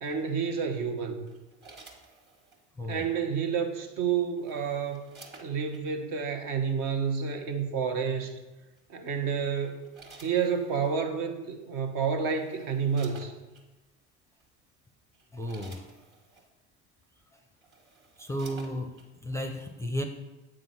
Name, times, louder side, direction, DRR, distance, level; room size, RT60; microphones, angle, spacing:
voice 1, 0.0-1.3 2.9-5.1 5.4-8.3 8.9-9.8 10.2-13.3, right 6 dB, 60° right, 5 dB, 1.1 m, -29 dB
sound 1, 1.3-2.6 4.0-5.8 6.9-7.1 8.8-9.1 9.6-11.0 11.8-11.9 12.2-13.7 14.4-14.6 15.0-16.5 17.2-17.3 17.6-19.1 19.5-19.6, right 3 dB, 30° right, 1.5 m, -53 dB
voice 2, 15.3-15.9 18.2-20.0, equal, 10° left, 5 dB, 0.5 m, -34 dB
7.6 x 3.8 x 5.7 m, 1.1 s
supercardioid pair, 90°, 37 cm